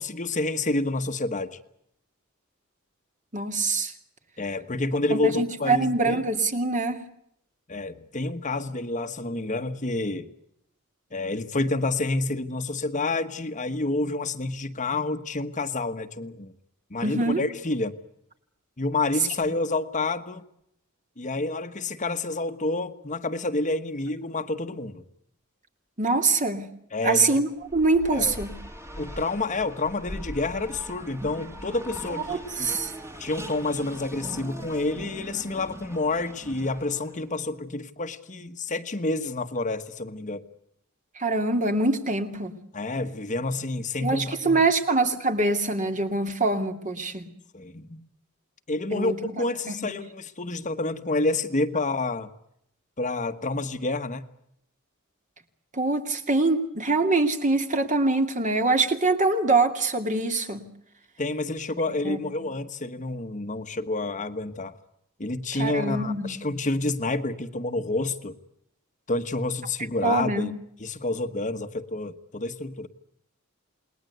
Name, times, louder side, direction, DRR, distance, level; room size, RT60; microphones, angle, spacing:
voice 1, 0.0-1.6 4.4-6.2 7.7-10.3 11.1-16.5 16.9-18.0 18.8-20.4 21.2-25.0 26.9-27.4 28.1-28.3 29.0-32.7 33.2-40.5 42.7-44.6 47.5-48.1 48.7-52.3 53.0-54.2 61.2-64.7 65.2-68.4 69.1-70.5 70.8-72.9, left 2 dB, 35° left, 1.3 m, -29 dB
voice 2, 3.3-3.9 5.2-7.0 17.0-17.4 26.0-26.7 27.0-28.5 32.1-32.9 41.2-42.5 44.0-47.2 48.9-49.2 49.7-49.8 55.7-60.6 62.0-62.5 65.6-66.4 70.0-70.5, right 3 dB, 35° right, 2.6 m, -24 dB
Race car auto racing, 27.6-37.3, equal, 15° right, 2.2 m, -41 dB
29.0 x 20.5 x 8.0 m
head